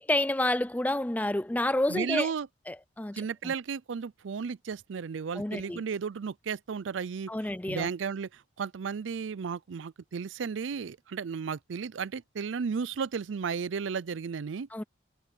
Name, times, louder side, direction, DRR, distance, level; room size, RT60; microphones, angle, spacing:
voice 1, 0.0-2.3 2.7-3.5 5.3-5.8 7.3-7.9 14.7-14.8, left 1 dB, 10° left, 0.4 m, -29 dB
voice 2, 1.9-2.5 3.1-7.3 7.7-14.7, right 6 dB, 80° right, 0.5 m, -34 dB
head